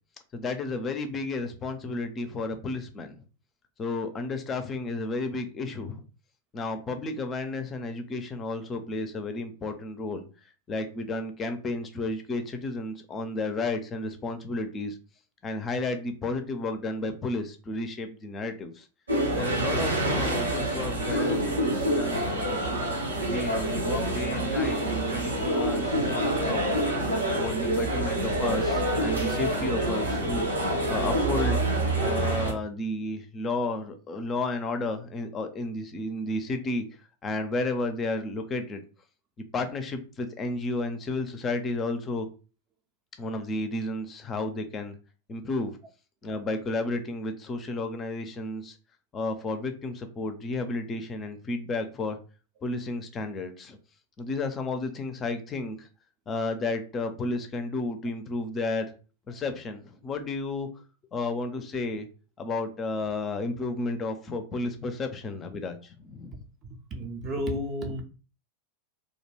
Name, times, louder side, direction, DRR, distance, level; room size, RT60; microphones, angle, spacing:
voice 1, 0.3-3.2 3.8-6.0 6.5-10.2 10.7-15.0 15.4-18.9 19.4-22.6 23.2-24.8 25.1-26.6 27.4-31.6 32.0-36.8 37.2-38.8 39.5-42.3 43.2-45.0 45.3-45.8 46.2-48.8 49.1-52.2 52.6-53.8 54.2-55.9 56.3-58.9 59.3-60.7 61.1-62.1 62.4-66.4, left 2 dB, 25° left, 0.4 m, -32 dB
sound 1, 19.1-32.5, right 1 dB, 75° right, 0.7 m, -27 dB
voice 2, 66.3-68.0, equal, 30° right, 0.5 m, -33 dB
2.4 x 2.2 x 3.1 m
figure-of-eight pair, 90°, 0 cm